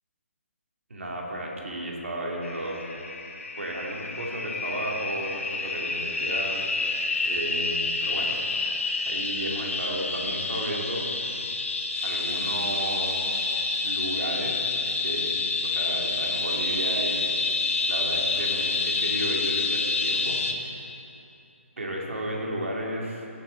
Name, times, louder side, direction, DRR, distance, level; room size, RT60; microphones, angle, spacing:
voice 1, 0.9-2.8 3.6-6.6 7.2-8.4 9.1-11.1 12.0-17.4 17.9-20.8 21.8-23.3, right 1 dB, 70° right, -1 dB, 2.5 m, -33 dB
sound 1, 2.4-20.5, left 3 dB, 70° left, 1.2 m, -28 dB
17.5 x 7.4 x 3.9 m, 2.7 s
figure-of-eight pair, 145°, 7 cm